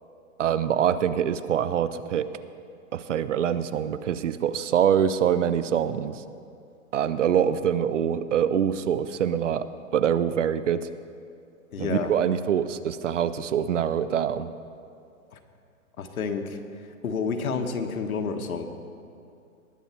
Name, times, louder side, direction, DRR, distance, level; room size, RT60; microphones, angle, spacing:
voice 1, 0.4-2.3 2.9-6.2 6.9-10.9 11.8-14.5, right 9 dB, 60° right, 14 dB, 0.6 m, -25 dB
voice 2, 11.7-12.1 15.3-15.4 16.0-16.6 17.0-18.7, left 5 dB, 85° left, 6 dB, 1.3 m, -29 dB
19.5 x 7.1 x 4.4 m, 2.5 s
hypercardioid pair, 170°, 42 cm